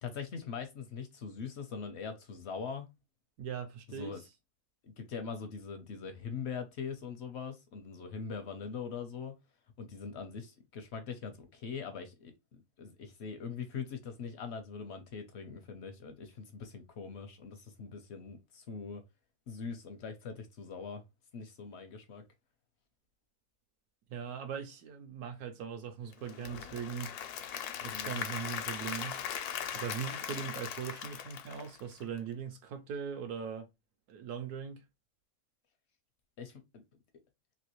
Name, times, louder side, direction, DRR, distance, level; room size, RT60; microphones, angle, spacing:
voice 1, 0.0-2.9 3.9-4.2 4.8-9.3 9.8-19.0 19.5-21.0 21.3-22.2 27.8-28.2 36.4-36.8, left 5 dB, 65° left, 0.7 m, -42 dB
voice 2, 3.4-4.2 24.1-27.1 27.8-29.1 29.7-33.7 34.1-34.8, right 7 dB, 80° right, 1.1 m, -40 dB
Applause / Crowd, 26.1-32.2, left 9 dB, 85° left, 1.1 m, -39 dB
3.1 x 2.7 x 2.9 m
omnidirectional pair, 1.6 m